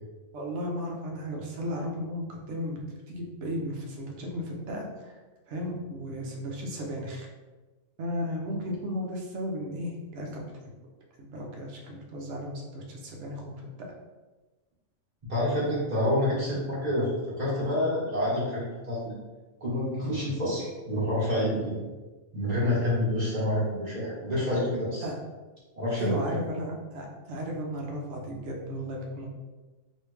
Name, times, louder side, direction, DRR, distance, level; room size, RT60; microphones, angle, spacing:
voice 1, 0.3-5.1 5.5-7.3 8.0-10.4 11.2-13.9 20.0-20.3 24.0-24.1 25.0-25.2 26.0-29.3, equal, 65° right, -1 dB, 0.9 m, -35 dB
voice 2, 15.3-19.1 19.6-21.6 22.3-25.0 25.7-26.4, left 1 dB, 35° right, -8 dB, 1.3 m, -28 dB
3.1 x 2.7 x 3.2 m, 1.2 s
omnidirectional pair, 1.3 m